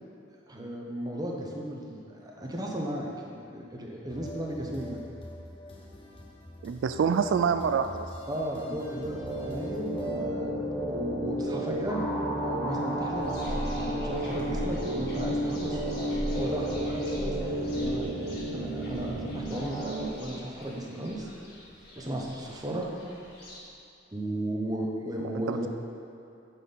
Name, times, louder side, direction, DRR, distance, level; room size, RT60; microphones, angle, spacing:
voice 1, 0.5-5.0 8.3-10.6 10.9-15.8 16.3-18.1 18.5-21.3 21.9-22.9 23.1-23.3 24.1-25.7, right 1 dB, 20° right, -1 dB, 1.0 m, -35 dB
sound 1, 4.1-10.2, left 1 dB, 30° left, 0.9 m, -46 dB
voice 2, 6.6-8.1 25.5-25.6, right 6 dB, 80° right, 9 dB, 0.3 m, -26 dB
sound 2, 8.5-20.0, right 1 dB, 5° left, 1.2 m, -32 dB
sound 3, 13.1-23.6, equal, 55° left, 2.0 m, -41 dB
9.9 x 4.4 x 5.5 m, 2.6 s
head